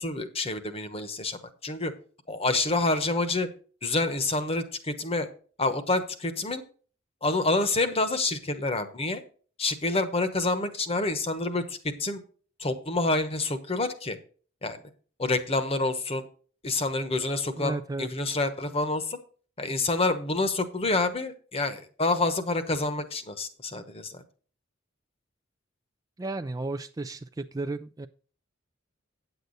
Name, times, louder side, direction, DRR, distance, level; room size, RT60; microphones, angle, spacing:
voice 1, 0.0-1.9 2.3-3.5 3.8-5.3 5.6-6.6 7.2-9.2 9.6-12.2 12.6-14.2 14.6-14.8 15.2-16.2 16.6-19.2 19.6-24.2, left 2 dB, 30° left, 9 dB, 1.0 m, -28 dB
voice 2, 17.6-18.1 26.2-28.1, right 2 dB, 20° right, 9 dB, 0.3 m, -33 dB
9.3 x 8.0 x 4.0 m, 0.42 s
head